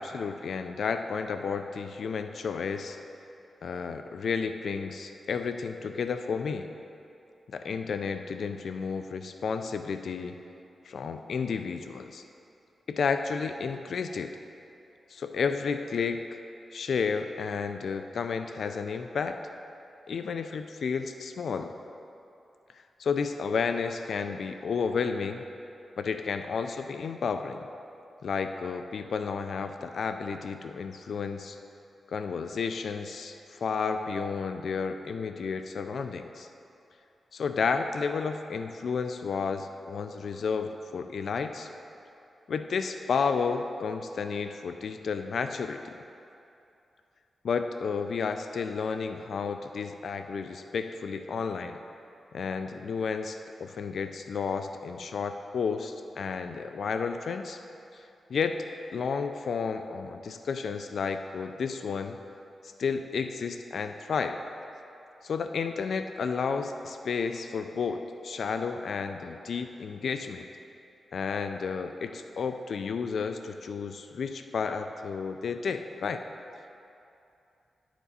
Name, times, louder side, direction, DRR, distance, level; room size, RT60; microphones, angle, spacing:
voice 1, 0.0-3.0 3.6-6.7 7.5-10.3 10.9-12.2 12.9-14.4 15.1-16.2 16.7-19.4 20.1-21.7 22.7-25.4 26.0-27.7 28.2-31.6 32.1-36.5 37.3-41.7 42.5-45.8 47.4-51.8 52.3-57.6 58.3-58.6 58.9-62.2 62.8-64.4 65.2-70.5 71.1-76.2, left 5 dB, 70° left, 8 dB, 0.3 m, -32 dB
10.5 x 5.9 x 4.1 m, 2.7 s
cardioid pair, 85°, 0 cm